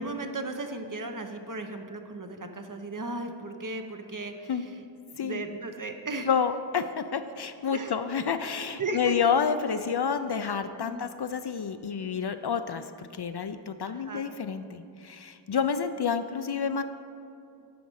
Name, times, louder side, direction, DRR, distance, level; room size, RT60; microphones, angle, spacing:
voice 1, 0.0-4.7 5.1-6.3 7.7-7.9 8.8-9.1 10.8-11.0 13.9-14.2, right 2 dB, 45° right, 5 dB, 0.8 m, -36 dB
voice 2, 6.3-16.8, left 6 dB, 60° left, 10 dB, 0.5 m, -29 dB
9.4 x 5.2 x 6.2 m, 2.5 s
wide cardioid pair, 45°, 45 cm